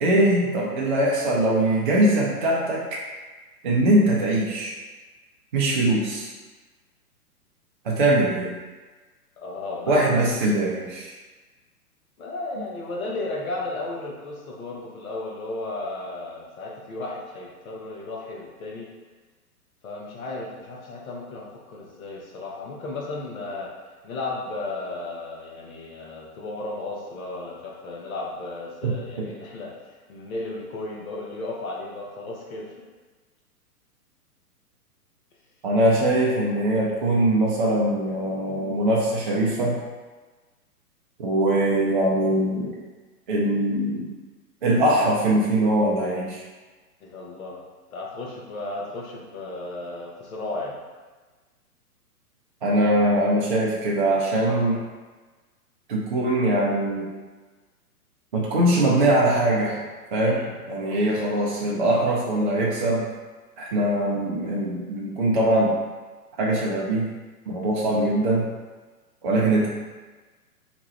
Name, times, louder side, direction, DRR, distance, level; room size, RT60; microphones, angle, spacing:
voice 1, 0.0-3.0 3.6-4.7 5.5-6.3 7.8-8.6 9.9-11.1 28.8-29.3 35.6-39.8 41.2-42.7 43.3-44.1 44.6-46.4 52.6-54.8 55.9-57.1 58.3-59.8 60.1-63.1 63.6-65.7 66.4-67.1 67.5-68.5 69.2-69.7, right 1 dB, 35° right, -4 dB, 0.4 m, -22 dB
voice 2, 9.4-10.2 12.2-18.9 19.8-23.7 24.0-29.7 30.1-32.7 47.0-47.6 47.9-50.8 60.2-60.6 61.0-61.2, left 2 dB, 60° left, -2 dB, 0.9 m, -34 dB
2.9 x 2.3 x 3.0 m, 1.3 s
figure-of-eight pair, 120°, 46 cm